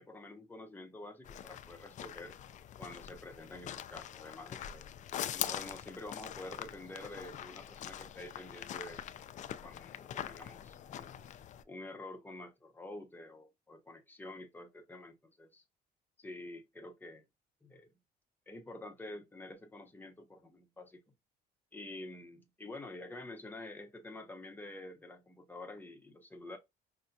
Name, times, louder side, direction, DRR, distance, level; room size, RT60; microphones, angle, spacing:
voice 1, 0.0-2.4 2.8-4.9 5.3-9.0 9.6-11.1 11.7-15.6 16.2-17.2 17.6-17.9 18.5-21.0 21.7-26.6, left 2 dB, 10° left, 0.9 m, -48 dB
sound 1, 1.2-11.6, left 10 dB, 45° left, 0.4 m, -43 dB
5.4 x 2.2 x 2.7 m
cardioid pair, 110°, 17 cm